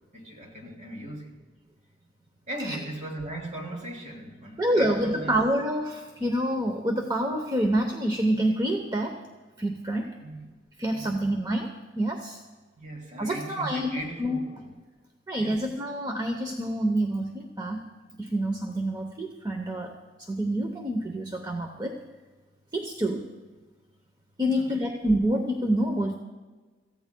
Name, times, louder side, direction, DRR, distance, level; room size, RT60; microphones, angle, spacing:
voice 1, 0.1-1.4 2.5-5.4 10.2-10.5 10.9-11.2 12.8-14.7 15.4-15.6 24.5-24.7, right 1 dB, 40° right, 2.7 m, -38 dB
voice 2, 4.6-9.2 9.6-10.1 10.8-12.4 13.2-13.9 14.2-14.4 15.3-17.8 18.2-22.0 22.7-23.3 24.4-26.1, right 1 dB, 20° right, 0.8 m, -27 dB
25.5 x 15.0 x 2.3 m
head